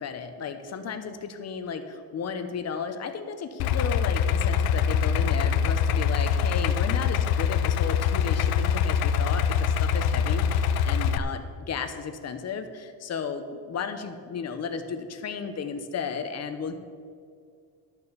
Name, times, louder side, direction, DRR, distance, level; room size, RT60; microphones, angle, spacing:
voice 1, 0.0-1.8 2.1-16.8, left 6 dB, 40° left, 8 dB, 1.1 m, -34 dB
Idling, 3.6-11.2, left 7 dB, 65° left, 0.6 m, -24 dB
12.0 x 7.1 x 6.8 m, 2.3 s
cardioid pair, 135°, 39 cm